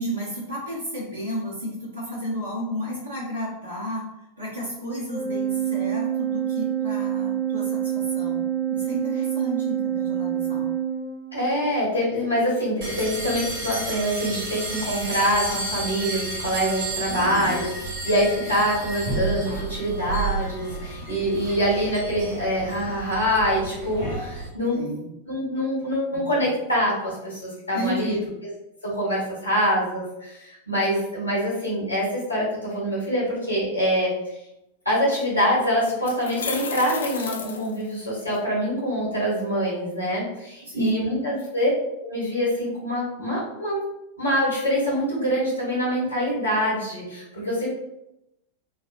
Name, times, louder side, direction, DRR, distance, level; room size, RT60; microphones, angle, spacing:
voice 1, 0.0-4.1 4.4-10.7 17.1-17.6 24.7-25.1 26.1-26.2 27.7-28.2 40.6-41.2, equal, 80° right, -9 dB, 0.8 m, -32 dB
Organ, 5.1-11.6, right 10 dB, 20° right, 0.5 m, -27 dB
voice 2, 11.3-17.7 18.0-24.8 25.2-28.2 28.8-34.1 34.8-41.7 42.0-43.8 44.2-47.7, equal, 90° left, -7 dB, 1.4 m, -25 dB
sound 1, 12.8-24.5, right 3 dB, 50° right, 1.1 m, -32 dB
sound 2, 35.2-35.3 35.9-38.4, left 5 dB, 65° left, 0.4 m, -34 dB
3.3 x 2.3 x 2.5 m, 0.88 s
figure-of-eight pair, 90°, 0 cm